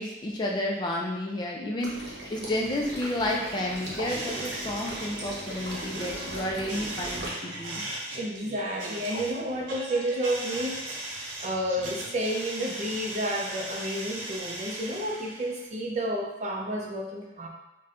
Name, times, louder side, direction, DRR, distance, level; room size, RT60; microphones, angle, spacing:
voice 1, 0.0-7.8, left 1 dB, 25° left, -1 dB, 0.4 m, -31 dB
Water / Liquid, 1.8-7.3, right 1 dB, 60° right, 1.0 m, -38 dB
sound 1, 4.1-15.7, right 1 dB, 90° right, 0.8 m, -38 dB
voice 2, 8.1-17.5, right 1 dB, 40° right, 0 dB, 0.5 m, -31 dB
5.6 x 2.2 x 2.5 m, 1.0 s
head